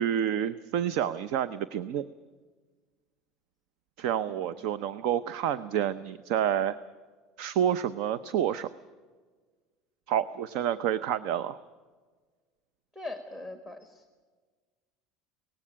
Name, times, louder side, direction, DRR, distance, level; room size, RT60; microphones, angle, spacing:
voice 1, 0.0-2.1 4.0-6.8 7.4-8.7 10.1-11.6, right 10 dB, 55° right, 15 dB, 0.6 m, -28 dB
voice 2, 12.9-14.0, left 2 dB, 10° right, 7 dB, 1.4 m, -41 dB
18.5 x 16.0 x 10.0 m, 1.4 s
cardioid pair, 170°, 0 cm